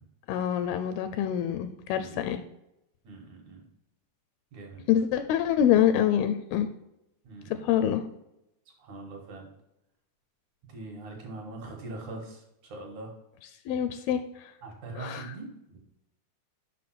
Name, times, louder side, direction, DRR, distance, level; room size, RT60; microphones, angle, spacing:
voice 1, 0.3-2.4 4.9-6.7 7.6-8.0 13.7-14.2 15.0-15.3, left 10 dB, 80° left, 9 dB, 2.3 m, -25 dB
voice 2, 3.0-3.6 4.5-4.9 7.2-7.8 8.8-9.5 10.7-13.1 14.6-15.8, right 3 dB, 60° right, 0 dB, 2.5 m, -42 dB
6.8 x 5.6 x 5.8 m, 0.84 s
omnidirectional pair, 4.6 m